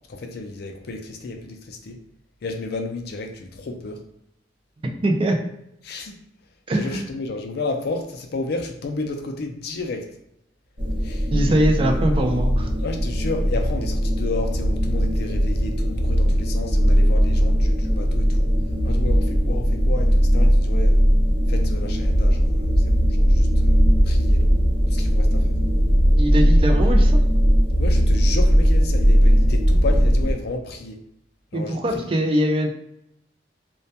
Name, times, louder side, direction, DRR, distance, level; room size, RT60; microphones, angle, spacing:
voice 1, 0.1-2.0 2.4-4.0 5.8-6.2 6.7-10.1 11.0-11.3 11.8-11.9 12.8-18.5 18.8-21.0 21.5-24.5 24.9-25.6 27.8-31.0 31.5-32.1, left 3 dB, 60° left, 4 dB, 0.4 m, -32 dB
voice 2, 5.0-5.4 6.7-7.1 11.3-12.7 26.2-27.2 31.5-32.7, right 1 dB, 30° right, 2 dB, 0.3 m, -22 dB
sound 1, 10.8-30.3, equal, 50° right, 0.9 m, -18 dB
2.2 x 2.2 x 2.7 m, 0.79 s
head